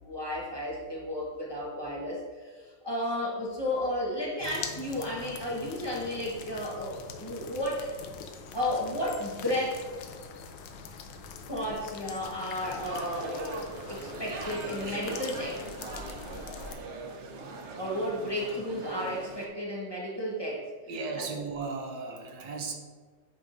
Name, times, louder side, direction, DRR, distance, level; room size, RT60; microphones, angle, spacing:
voice 1, 0.0-2.5 2.8-7.9 8.5-9.8 11.5-15.6 17.8-20.7 21.2-21.4, left 1 dB, 20° left, -5 dB, 0.8 m, -33 dB
sound 1, 4.4-16.8, left 5 dB, 85° left, 1.3 m, -44 dB
sound 2, 12.6-19.5, right 3 dB, 90° right, 0.6 m, -41 dB
voice 2, 20.9-22.7, right 4 dB, 65° right, 2 dB, 1.2 m, -36 dB
8.3 x 4.7 x 2.6 m, 1.5 s
omnidirectional pair, 2.0 m